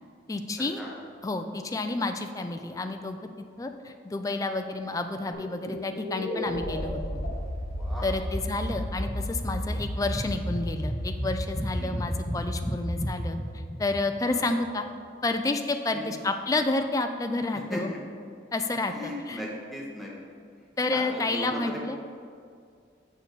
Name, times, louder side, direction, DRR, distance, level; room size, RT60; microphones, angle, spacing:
voice 1, 0.3-0.8 1.2-3.2 3.6-7.2 8.0-13.4 13.8-14.8 15.2-17.9 18.5-19.4 20.8-22.0, left 2 dB, 20° left, 6 dB, 0.3 m, -30 dB
sound 1, 5.3-14.7, equal, 50° left, 1.3 m, -32 dB
voice 2, 18.9-20.1 20.9-21.7, left 1 dB, ahead, -5 dB, 1.2 m, -36 dB
6.7 x 6.4 x 4.0 m, 2.2 s
head